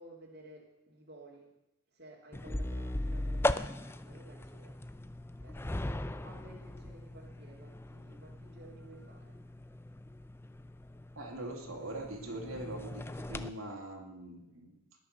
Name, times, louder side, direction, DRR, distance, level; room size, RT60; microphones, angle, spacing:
voice 1, 0.0-1.5 1.9-5.1 5.4-9.4, right 1 dB, 45° right, -2 dB, 2.6 m, -55 dB
sound 1, 2.3-13.5, left 1 dB, 10° left, 0.4 m, -39 dB
voice 2, 11.1-14.8, right 2 dB, 70° right, 0 dB, 2.9 m, -42 dB
20.5 x 6.9 x 6.6 m, 0.90 s
head